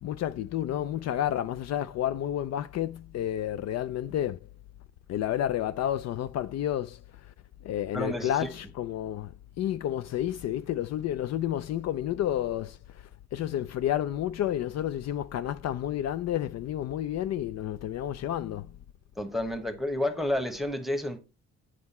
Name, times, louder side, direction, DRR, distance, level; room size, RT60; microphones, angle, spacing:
voice 1, 0.0-4.4 5.1-7.0 7.6-12.8 13.3-18.7, left 11 dB, 60° left, 0.4 m, -30 dB
voice 2, 7.9-8.5 19.2-21.2, left 1 dB, ahead, 1.1 m, -30 dB
7.8 x 4.8 x 4.2 m
cardioid pair, 90°, 30 cm